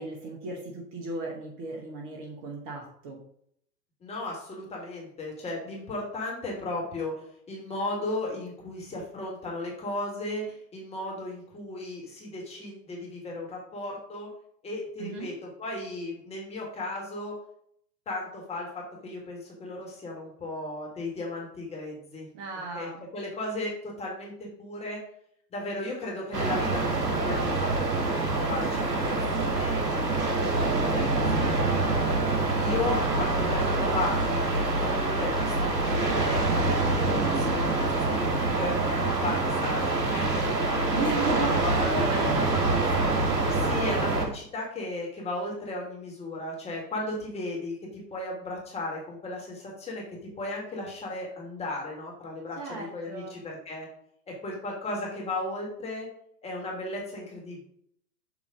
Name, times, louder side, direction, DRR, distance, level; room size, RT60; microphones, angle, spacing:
voice 1, 0.0-3.2 15.0-15.3 22.3-23.0 41.0-43.1 52.6-53.4, right 3 dB, 25° right, -1 dB, 1.1 m, -35 dB
voice 2, 4.0-14.3 14.6-15.3 15.6-17.4 18.0-22.3 22.7-25.0 25.5-32.1 32.6-41.3 41.6-41.9 43.5-50.0 50.4-53.9 54.3-56.1 56.4-57.6, left 2 dB, 10° left, -2 dB, 1.6 m, -35 dB
sound 1, 26.3-44.3, right 2 dB, 85° right, 1.6 m, -26 dB
7.0 x 2.8 x 4.9 m, 0.69 s
figure-of-eight pair, 120°, 50 cm